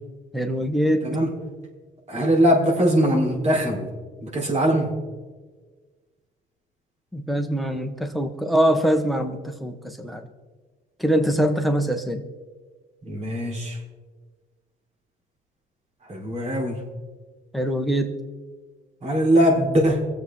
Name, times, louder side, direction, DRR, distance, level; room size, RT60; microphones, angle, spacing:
voice 1, 0.3-1.2 7.1-10.2 11.0-12.2 17.5-18.2, right 1 dB, ahead, 7 dB, 1.3 m, -23 dB
voice 2, 2.1-3.9 4.2-4.9 13.0-13.8 16.0-16.8 19.0-20.0, equal, 40° right, -1 dB, 3.8 m, -21 dB
23.5 x 7.9 x 3.8 m, 1.4 s
cardioid pair, 110°, 17 cm